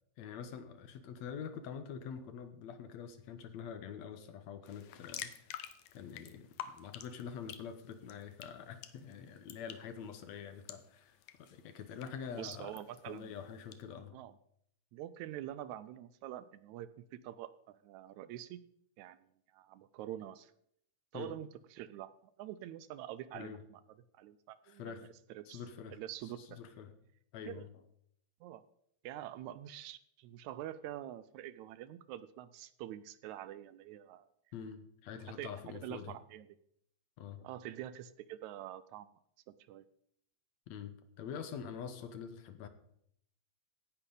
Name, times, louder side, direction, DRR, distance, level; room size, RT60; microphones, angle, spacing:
voice 1, 0.2-5.6 5.9-14.2 21.1-21.4 23.3-23.6 24.6-25.1 25.5-26.9 27.3-27.7 34.5-36.1 37.2-37.5 40.7-42.7, left 7 dB, 70° left, 10 dB, 2.2 m, -46 dB
sound 1, 4.7-13.8, left 11 dB, 85° left, 2.3 m, -51 dB
voice 2, 12.4-13.3 14.1-14.3 14.9-18.6 19.0-19.2 19.5-20.5 21.1-22.1 22.4-23.8 24.2-25.6 25.9-26.6 27.5-27.7 28.4-28.6 29.0-34.3 35.4-36.5 37.4-39.1 39.5-39.9, right 12 dB, 80° right, 15 dB, 1.9 m, -46 dB
17.0 x 10.5 x 3.9 m, 0.69 s
omnidirectional pair, 3.4 m